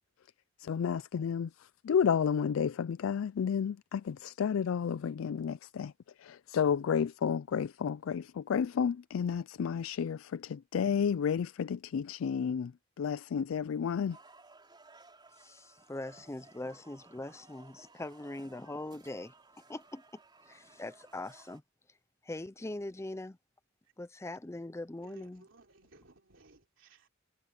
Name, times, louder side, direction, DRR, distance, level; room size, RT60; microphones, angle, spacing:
voice 1, 0.6-5.9 6.2-14.2, left 7 dB, 80° left, 0.4 m, -31 dB
bar with opera, 14.1-21.6, right 3 dB, 25° right, 4.1 m, -59 dB
voice 2, 15.3-19.3 19.7-21.6 21.9-22.0 22.2-23.4 24.0-25.4, left 2 dB, 15° left, 0.5 m, -42 dB
voice 3, 25.0-27.1, right 2 dB, 70° right, 3.5 m, -60 dB
head